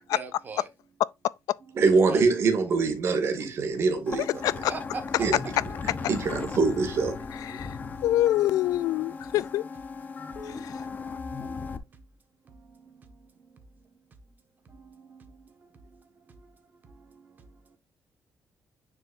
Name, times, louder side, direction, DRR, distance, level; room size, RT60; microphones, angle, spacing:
voice 1, 0.1-0.7 1.8-2.2 4.7-5.0 7.6-8.0 10.3-11.6 12.4-13.6 14.6-17.8, right 4 dB, 30° right, 1.5 m, -45 dB
voice 2, 1.8-4.4 5.2-5.4 6.1-7.2, right 4 dB, 45° right, 1.9 m, -24 dB
sound 1, 4.1-11.8, left 4 dB, 30° left, 0.8 m, -37 dB
voice 3, 4.4-4.7 7.5-7.7 8.0-9.6 10.5-10.7, left 14 dB, 85° left, 0.4 m, -25 dB
10.0 x 4.6 x 2.6 m
cardioid pair, 170°, 6 cm